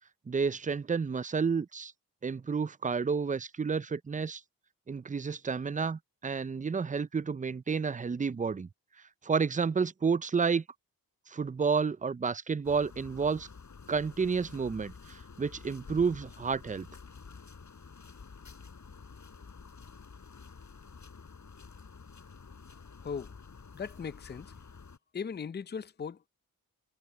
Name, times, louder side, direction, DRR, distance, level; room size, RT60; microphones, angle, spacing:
voice 1, 0.3-1.9 2.2-4.4 4.9-8.7 9.2-10.6 11.3-13.5 13.9-16.9, right 5 dB, 20° right, 0.6 m, -30 dB
sound 1, 12.6-25.0, left 5 dB, 50° left, 7.9 m, -50 dB
voice 2, 23.0-23.3 23.7-24.5 25.1-26.3, left 6 dB, 30° left, 0.6 m, -38 dB
cardioid pair, 50°, 37 cm